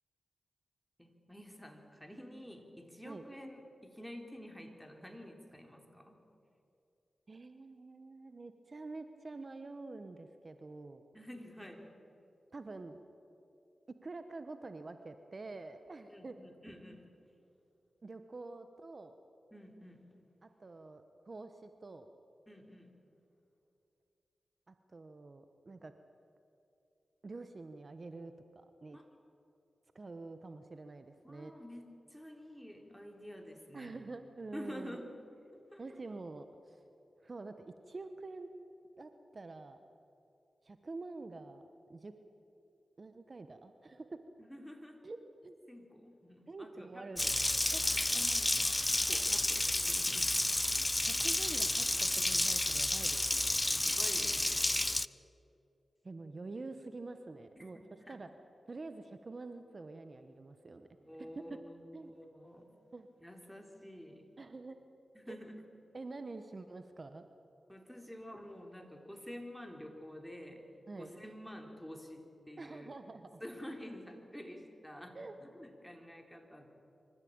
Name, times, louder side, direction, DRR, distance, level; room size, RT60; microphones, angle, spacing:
voice 1, 1.0-6.2 11.1-11.9 16.1-17.1 19.5-20.1 22.5-22.9 28.9-29.1 31.2-34.0 34.5-35.8 44.4-45.0 45.7-47.3 48.1-50.5 53.7-54.9 57.6-57.7 58.0-58.2 61.0-62.7 63.2-64.3 65.1-65.6 67.7-70.6 71.0-73.0 73.4-76.7, equal, ahead, 3 dB, 3.8 m, -49 dB
voice 2, 7.3-11.0 12.5-13.0 14.0-16.3 18.0-19.2 20.4-22.1 24.7-25.9 27.2-29.0 29.9-31.5 33.7-35.0 35.8-36.8 37.2-38.5 39.0-39.8 40.6-41.6 41.9-42.1 43.0-44.2 45.0-45.2 45.4-45.5 46.5-47.3 47.7-47.8 48.1-48.3 51.0-53.6 56.0-57.8 58.1-58.3 58.7-60.9 61.2-61.6 61.9-62.1 62.7-63.1 64.4-64.8 65.3-65.4 65.9-67.2 70.9-71.1 72.6-73.4 75.1-75.3, right 3 dB, 50° right, 8 dB, 1.2 m, -47 dB
Water tap faucet, 47.2-55.1, left 1 dB, 20° left, 0.5 m, -31 dB
25.0 x 14.5 x 8.8 m, 2.8 s
cardioid pair, 40°, 0 cm